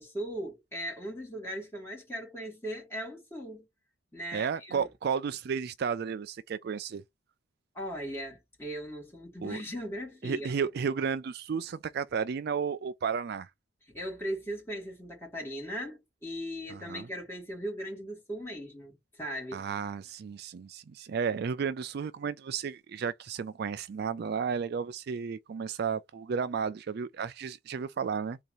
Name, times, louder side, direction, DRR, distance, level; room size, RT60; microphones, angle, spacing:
voice 1, 0.0-3.7 4.1-4.9 7.7-10.5 13.9-19.7, equal, 15° left, 2.5 m, -38 dB
voice 2, 4.3-7.0 9.4-9.6 10.2-13.5 16.7-17.1 19.5-28.4, right 6 dB, 55° right, 0.4 m, -33 dB
3.8 x 2.8 x 4.8 m
head